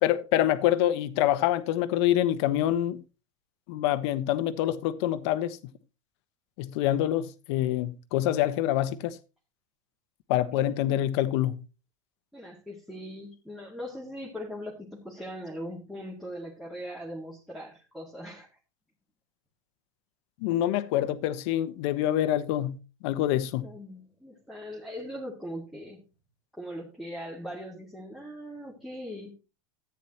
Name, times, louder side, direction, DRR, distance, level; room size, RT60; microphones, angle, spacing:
voice 1, 0.0-3.0 3.7-5.6 6.6-9.2 10.3-11.6 20.4-22.8 23.0-23.7, left 12 dB, 60° left, 1.1 m, -26 dB
voice 2, 10.6-11.1 12.3-18.5 23.6-26.0 26.6-29.3, equal, ahead, 1.9 m, -40 dB
13.5 x 9.4 x 2.9 m
supercardioid pair, 150°, 16 cm